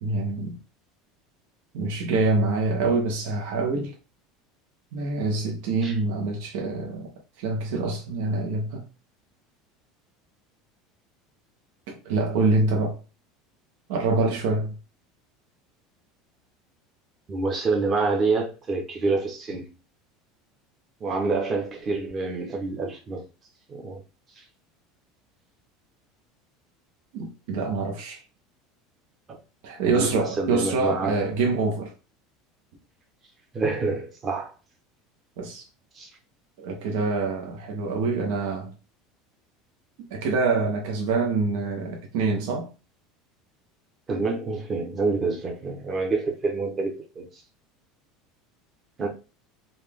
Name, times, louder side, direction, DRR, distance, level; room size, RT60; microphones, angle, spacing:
voice 1, 0.0-0.6 1.7-4.0 4.9-7.1 7.4-8.8 11.9-13.0 13.9-14.8 27.1-28.2 29.6-31.9 35.4-35.6 36.6-38.7 40.1-42.7, right 3 dB, 65° right, 0.9 m, -25 dB
voice 2, 17.3-19.7 21.0-23.2 23.7-24.0 24.4-24.5 29.3-29.4 29.9-31.1 33.5-34.5 35.9-36.1 44.1-47.3 49.0-49.1, right 3 dB, 20° right, 0.9 m, -27 dB
4.1 x 2.4 x 3.4 m
cardioid pair, 170°, 0 cm